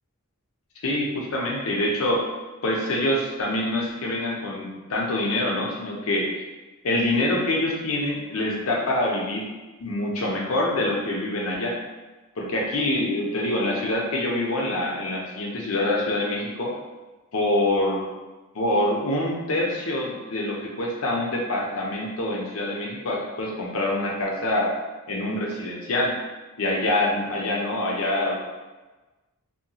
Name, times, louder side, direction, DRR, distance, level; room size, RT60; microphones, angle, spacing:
voice 1, 0.8-2.2 2.6-6.4 6.8-9.5 9.8-11.8 12.4-16.8 17.3-18.0 18.5-24.7 25.1-26.2 26.6-28.4, left 1 dB, 65° left, -2 dB, 0.6 m, -25 dB
2.7 x 2.2 x 2.7 m, 1.2 s
head